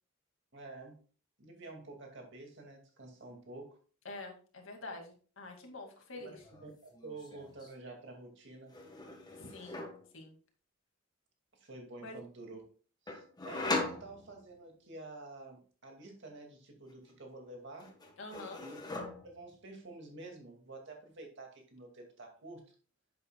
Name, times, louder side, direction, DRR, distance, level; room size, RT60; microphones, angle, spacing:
voice 1, 0.5-1.0 1.4-3.8 6.1-8.7 11.5-12.6 13.1-17.9 18.6-18.8 19.2-22.7, right 2 dB, 60° right, 2 dB, 2.3 m, -49 dB
voice 2, 4.0-6.4 9.3-10.4 12.0-12.1 18.2-18.7, left 2 dB, 70° left, 2 dB, 2.2 m, -47 dB
sound 1, 6.3-6.7 6.9-7.7 8.7-10.1 13.1-14.7 16.9-17.5 17.8-19.5, left 2 dB, 20° left, 1.5 m, -40 dB
10.0 x 7.6 x 2.3 m, 0.39 s
head